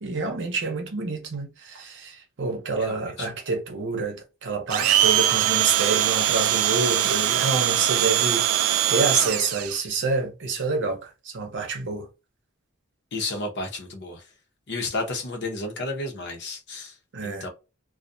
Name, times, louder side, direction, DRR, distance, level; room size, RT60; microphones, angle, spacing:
voice 1, 0.0-12.1 17.1-17.5, right 3 dB, 60° right, 0.7 m, -28 dB
voice 2, 2.8-3.3 13.1-14.2 14.7-16.9 17.2-17.5, left 2 dB, 55° left, 0.8 m, -32 dB
Domestic sounds home sounds, 4.7-9.8, right 11 dB, 75° right, 0.3 m, -22 dB
2.4 x 2.2 x 2.5 m
head